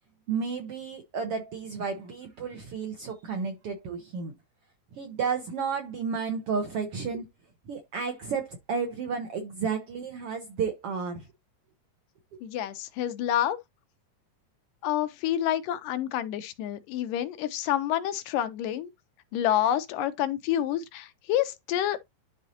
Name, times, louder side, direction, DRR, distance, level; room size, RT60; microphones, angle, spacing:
voice 1, 0.3-4.3 4.9-7.3 7.6-11.3, right 5 dB, 65° right, 1.5 m, -32 dB
voice 2, 12.4-13.6 14.8-18.9 19.3-22.0, left 11 dB, 80° left, 2.4 m, -28 dB
11.5 x 4.0 x 2.8 m
omnidirectional pair, 3.9 m